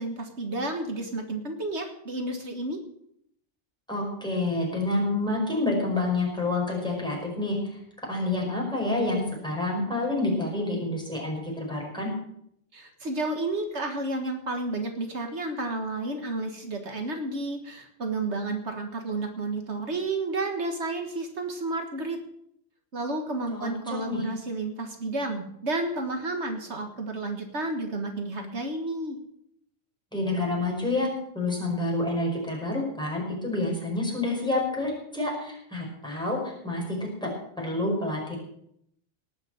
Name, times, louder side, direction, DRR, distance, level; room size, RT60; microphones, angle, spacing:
voice 1, 0.0-2.8 12.7-22.2 22.9-29.2, right 2 dB, 70° right, 4 dB, 1.9 m, -31 dB
voice 2, 3.9-7.8 8.1-12.1 23.5-24.2 30.1-31.1 31.3-37.3 37.6-38.3, left 2 dB, 5° left, -2 dB, 5.1 m, -28 dB
18.5 x 6.6 x 7.7 m, 0.73 s
omnidirectional pair, 1.2 m